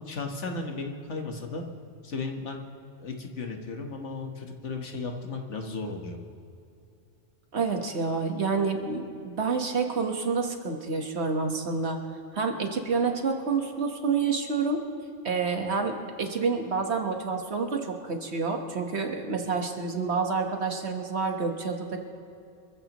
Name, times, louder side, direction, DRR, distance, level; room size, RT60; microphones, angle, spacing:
voice 1, 0.1-1.6 2.0-2.6 3.0-6.2, left 3 dB, 75° left, 3 dB, 1.7 m, -35 dB
voice 2, 7.5-12.0 12.3-14.8 15.2-22.0, right 4 dB, 60° right, 4 dB, 1.6 m, -28 dB
26.5 x 15.0 x 3.1 m, 2.5 s
omnidirectional pair, 1.2 m